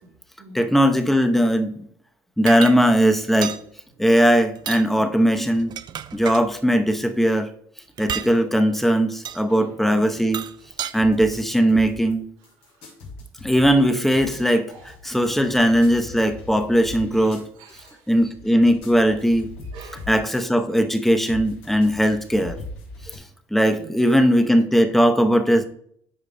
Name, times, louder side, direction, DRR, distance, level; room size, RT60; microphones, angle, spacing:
voice 1, 0.0-0.7 3.9-4.2 4.9-5.1 7.9-8.1 9.5-10.2 12.4-12.9 14.7-15.6 17.1-18.2 19.6-20.1 23.6-24.0, right 3 dB, 85° right, 2.4 m, -47 dB
voice 2, 0.5-1.7 2.4-3.6 4.0-5.7 6.1-7.5 8.0-10.4 10.9-12.3 13.4-14.7 15.0-17.4 18.1-19.5 20.1-22.5 23.5-25.6, equal, ahead, 0.8 m, -19 dB
sound 1, 2.5-2.8 3.4-3.6 4.6-4.9 5.6-6.5 8.0-8.3 9.3-9.4 10.1-10.9, right 9 dB, 45° right, 0.4 m, -31 dB
sound 2, 10.9-12.1 12.4-20.4 20.7-23.2, left 2 dB, 70° left, 2.8 m, -40 dB
12.0 x 4.7 x 2.2 m
supercardioid pair, 90°, 10 cm